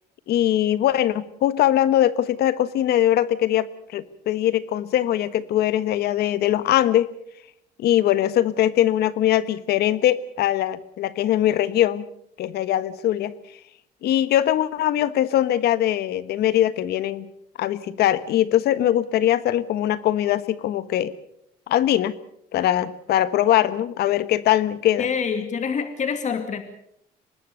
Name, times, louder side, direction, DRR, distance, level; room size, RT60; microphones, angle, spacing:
voice 1, 0.3-7.1 7.8-12.1 12.4-13.3 14.0-17.3 17.6-21.1 21.7-22.1 22.5-25.1, left 12 dB, 75° left, 14 dB, 1.4 m, -21 dB
voice 2, 25.0-26.6, left 6 dB, 45° left, 8 dB, 2.3 m, -26 dB
24.5 x 20.0 x 6.6 m, 0.72 s
cardioid pair, 110°, 17 cm